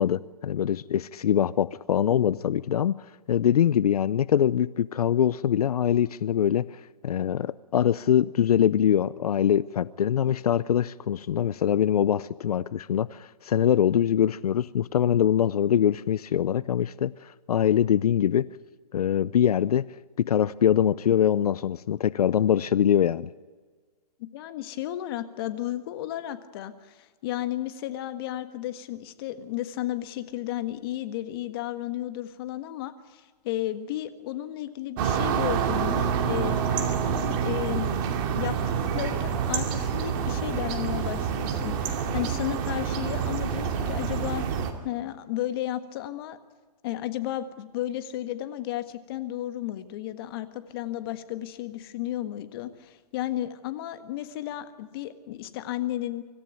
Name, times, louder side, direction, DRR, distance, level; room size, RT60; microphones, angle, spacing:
voice 1, 0.0-2.9 3.3-6.6 7.0-18.5 18.9-19.9 20.2-23.3, left 9 dB, 65° left, 19 dB, 0.6 m, -23 dB
voice 2, 24.2-37.9 38.3-38.6 38.9-44.5 44.8-46.4 46.8-56.2, left 13 dB, 35° left, 10 dB, 1.6 m, -33 dB
sound 1, 35.0-44.7, right 7 dB, 30° right, 2.4 m, -27 dB
25.5 x 14.5 x 9.1 m, 1.5 s
hypercardioid pair, 150°, 21 cm